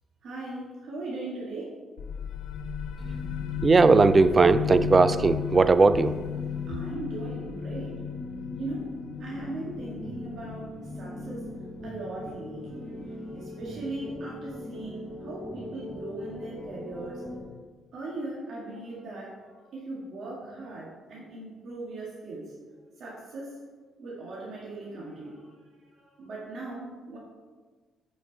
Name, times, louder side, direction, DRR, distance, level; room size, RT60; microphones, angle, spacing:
voice 1, 0.2-1.7 6.7-7.9 8.5-8.9 9.2-11.4 11.8-17.2 17.9-22.5 23.0-23.6 24.0-25.5 25.9-27.2, right 2 dB, 70° right, -5 dB, 1.8 m, -39 dB
sound 1, 2.0-13.4, left 9 dB, 85° left, 0.6 m, -35 dB
sound 2, 3.0-17.4, left 1 dB, 5° left, 1.5 m, -41 dB
voice 2, 3.6-6.2, right 4 dB, 30° right, 14 dB, 0.3 m, -18 dB
8.9 x 5.1 x 4.0 m, 1.4 s
cardioid pair, 90°, 0 cm